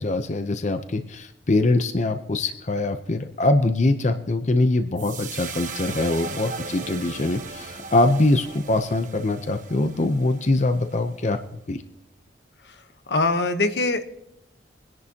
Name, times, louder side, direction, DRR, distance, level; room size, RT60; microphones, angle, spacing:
voice 1, 0.0-11.8, left 2 dB, 40° left, 8 dB, 0.6 m, -23 dB
sound 1, 5.0-11.4, right 5 dB, 45° right, 1.2 m, -38 dB
voice 2, 13.1-14.0, left 2 dB, 75° left, 9 dB, 1.0 m, -23 dB
23.0 x 11.0 x 2.9 m, 0.80 s
head